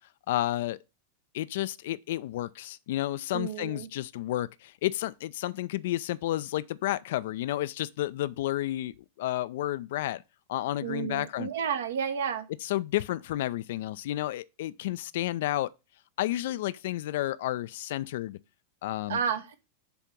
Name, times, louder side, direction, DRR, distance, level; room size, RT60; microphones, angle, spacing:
voice 1, 0.3-0.8 1.3-10.2 10.5-11.5 12.6-15.7 16.2-18.4 18.8-19.2, left 14 dB, 55° left, 0.4 m, -31 dB
voice 2, 3.3-3.9 10.8-12.5 19.1-19.6, right 7 dB, 60° right, 1.1 m, -31 dB
7.0 x 4.5 x 6.0 m
figure-of-eight pair, 90°, 0 cm